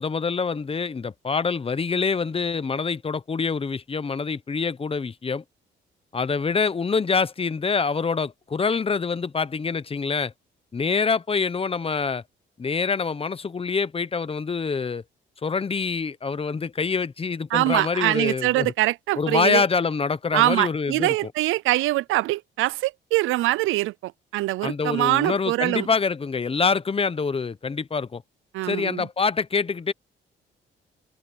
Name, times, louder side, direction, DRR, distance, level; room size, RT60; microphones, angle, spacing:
voice 1, 0.0-5.4 6.1-10.3 10.7-12.2 12.6-15.0 15.4-18.7 19.2-21.1 24.6-28.2 28.6-29.9, left 5 dB, 30° left, 1.0 m, -25 dB
voice 2, 17.5-19.6 20.3-25.9 28.5-29.1, right 17 dB, 85° right, 0.6 m, -23 dB
cardioid pair, 90°, 20 cm